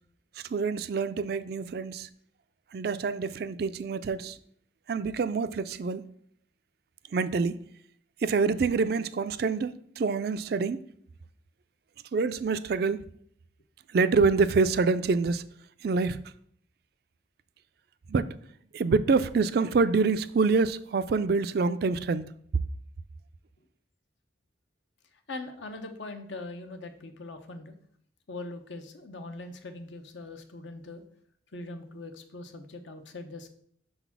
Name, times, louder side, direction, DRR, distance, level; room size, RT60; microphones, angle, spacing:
voice 1, 0.5-2.1 2.7-4.4 4.9-6.0 7.1-7.6 8.2-10.8 12.1-13.0 13.9-15.4 15.8-16.2 18.1-18.3 18.7-22.3, right 4 dB, 55° right, 0.3 m, -26 dB
voice 2, 25.1-27.7 28.3-31.0 31.5-33.5, left 2 dB, 75° left, 0.9 m, -41 dB
6.1 x 4.0 x 5.9 m
head